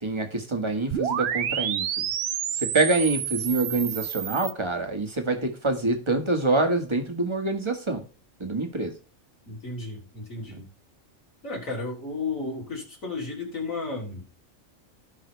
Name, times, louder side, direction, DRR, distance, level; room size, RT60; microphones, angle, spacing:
voice 1, 0.0-2.1 2.5-8.0 8.4-9.0, right 2 dB, 20° right, 5 dB, 1.7 m, -26 dB
sound 1, 0.9-4.5, right 9 dB, 60° right, 0.9 m, -29 dB
voice 2, 9.5-10.6 11.4-14.3, left 3 dB, 85° left, -1 dB, 4.1 m, -33 dB
17.0 x 5.7 x 3.4 m, 0.33 s
omnidirectional pair, 1.4 m